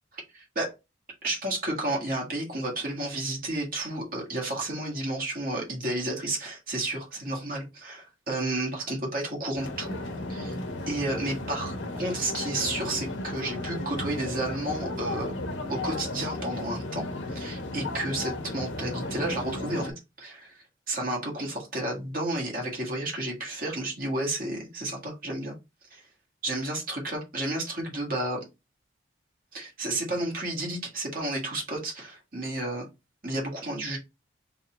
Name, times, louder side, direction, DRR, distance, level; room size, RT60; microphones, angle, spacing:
voice 1, 0.3-0.7 1.2-10.0 10.3-10.6 10.9-15.3 15.7-25.5 25.9-26.0 26.4-28.4 29.5-32.9 33.2-34.0, right 1 dB, 45° right, 0 dB, 1.5 m, -32 dB
sound 1, 9.6-19.9, left 2 dB, 85° left, 1.0 m, -34 dB
4.0 x 3.6 x 2.9 m, 0.24 s
head